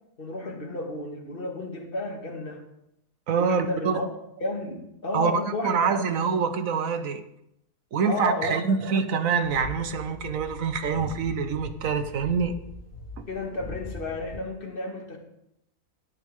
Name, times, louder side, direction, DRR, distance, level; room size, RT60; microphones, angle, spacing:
voice 1, 0.2-2.6 3.4-4.1 4.4-5.8 8.0-8.8 13.3-15.2, left 2 dB, 35° left, 2.2 m, -32 dB
voice 2, 3.3-4.0 5.1-5.3 5.6-7.2 7.9-12.5 13.2-13.3, right 6 dB, 65° right, 1.3 m, -25 dB
sound 1, 9.4-14.4, left 1 dB, 60° left, 2.6 m, -41 dB
17.0 x 9.8 x 3.7 m
omnidirectional pair, 1.6 m